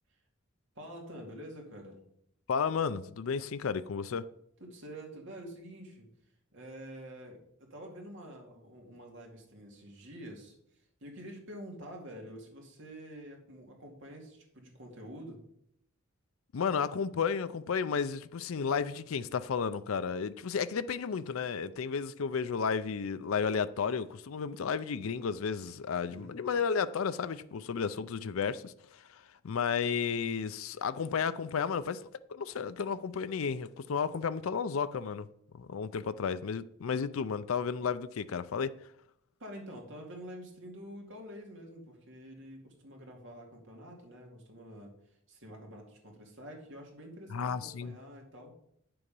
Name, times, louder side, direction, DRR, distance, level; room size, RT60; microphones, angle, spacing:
voice 1, 0.7-2.0 4.6-6.1 6.5-10.5 11.0-15.4 26.1-26.3 39.4-48.5, equal, 65° right, 2.5 m, -47 dB
voice 2, 2.5-4.3 16.5-35.3 35.5-38.7 47.3-48.0, left 6 dB, 75° left, 0.5 m, -33 dB
9.5 x 6.9 x 5.3 m
head